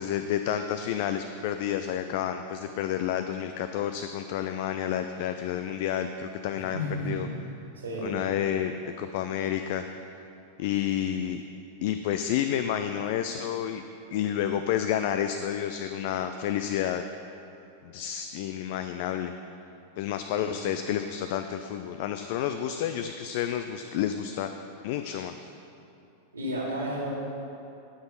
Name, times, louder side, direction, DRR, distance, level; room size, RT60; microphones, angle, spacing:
voice 1, 0.0-7.3 8.0-9.8 10.6-11.4 11.8-13.8 14.1-17.0 17.8-19.3 20.0-24.5 24.8-25.5, left 10 dB, 50° left, 8 dB, 0.3 m, -30 dB
voice 2, 6.5-7.3 7.8-8.2 20.3-20.5 26.3-27.1, equal, 70° right, -4 dB, 2.4 m, -32 dB
11.5 x 6.1 x 5.2 m, 2.8 s
figure-of-eight pair, 90°, 0 cm